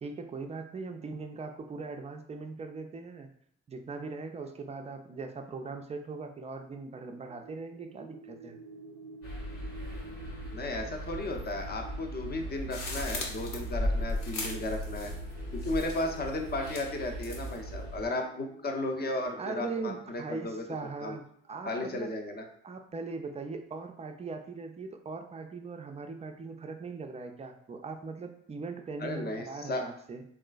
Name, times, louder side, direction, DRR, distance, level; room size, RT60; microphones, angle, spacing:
voice 1, 0.0-3.3 3.7-8.6 19.4-22.1 22.6-30.2, right 4 dB, 20° right, 6 dB, 0.4 m, -40 dB
sound 1, 7.2-21.6, right 3 dB, 80° right, 0.5 m, -51 dB
sound 2, 9.2-18.1, right 1 dB, 85° left, 1.4 m, -41 dB
voice 2, 10.5-15.1 15.5-20.6 21.0-21.2 21.7-22.4 29.0-29.8, left 2 dB, 25° left, 4 dB, 0.6 m, -34 dB
sound 3, 12.7-15.3 15.6-16.2 16.7-17.6, left 2 dB, 55° left, 0.9 m, -35 dB
3.6 x 2.4 x 2.4 m, 0.65 s
hypercardioid pair, 50°, 36 cm